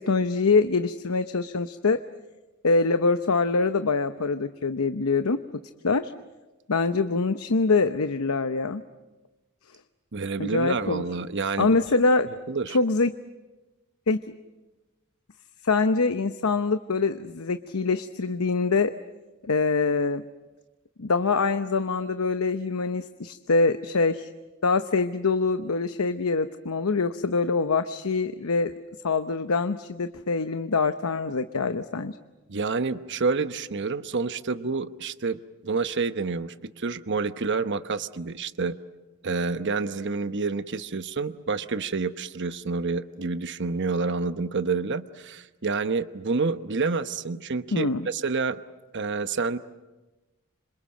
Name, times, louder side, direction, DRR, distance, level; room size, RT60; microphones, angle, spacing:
voice 1, 0.0-2.0 2.6-5.4 5.8-6.1 6.7-8.8 10.4-11.0 11.6-12.3 12.7-13.1 14.1-14.2 15.6-18.9 19.4-20.2 21.0-24.3 24.6-28.7 29.0-32.2 47.7-48.1, left 4 dB, 85° left, 10 dB, 0.8 m, -24 dB
voice 2, 10.1-11.8 12.5-12.8 32.5-38.8 39.2-48.6 48.9-49.6, right 4 dB, 55° right, 12 dB, 1.0 m, -28 dB
27.0 x 27.0 x 7.7 m, 1.1 s
head